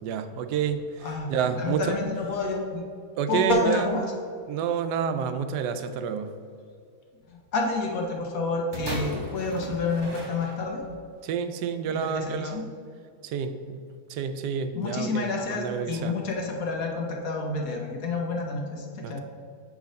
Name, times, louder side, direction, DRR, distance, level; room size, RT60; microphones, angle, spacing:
voice 1, 0.0-2.0 3.2-3.8 4.5-6.3 11.2-12.6 13.2-13.8 14.1-16.1 19.0-19.2, right 7 dB, 90° right, 9 dB, 1.2 m, -29 dB
voice 2, 1.0-2.8 3.3-4.0 7.3-10.8 11.9-12.6 14.7-19.2, left 3 dB, 60° left, 1 dB, 1.3 m, -29 dB
sound 1, 8.7-11.0 11.8-11.9, right 1 dB, 20° right, 0.7 m, -36 dB
6.4 x 4.8 x 5.2 m, 2.2 s
omnidirectional pair, 1.7 m